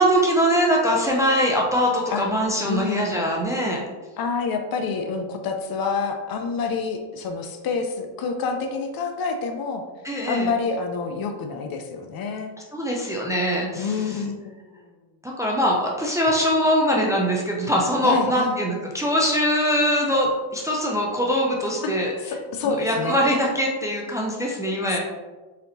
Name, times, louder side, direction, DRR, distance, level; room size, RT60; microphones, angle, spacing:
voice 1, 0.0-3.8 10.0-10.5 12.7-14.2 15.2-22.1 22.8-25.0, equal, 5° right, -3 dB, 0.4 m, -22 dB
voice 2, 2.6-3.1 4.2-9.8 10.2-12.5 13.7-14.8 18.0-18.6 21.8-21.9 22.2-23.2 24.9-25.0, left 4 dB, 50° left, 5 dB, 0.6 m, -27 dB
4.2 x 4.0 x 2.7 m, 1.2 s
cardioid pair, 120°, 48 cm